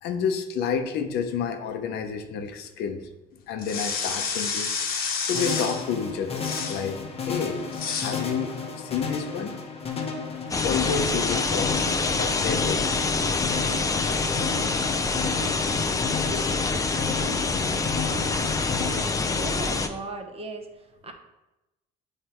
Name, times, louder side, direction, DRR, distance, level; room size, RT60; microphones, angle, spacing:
voice 1, 0.0-3.1 3.5-4.7 5.2-7.6 8.0-9.5 10.6-14.4 15.1-15.6 16.0-16.6 17.4-17.6 18.0-18.1 19.0-19.5, left 6 dB, 80° left, 7 dB, 0.8 m, -31 dB
sound 1, 3.6-5.9 6.4-6.9 7.7-8.2, left 5 dB, 60° left, 1.1 m, -29 dB
sound 2, 5.4-19.0, left 5 dB, 35° left, 1.1 m, -34 dB
sound 3, 10.5-19.9, left 4 dB, 20° left, 0.5 m, -26 dB
voice 2, 19.3-21.1, right 3 dB, 35° right, 4 dB, 1.0 m, -37 dB
7.5 x 3.3 x 4.5 m, 0.97 s
cardioid pair, 110°, 17 cm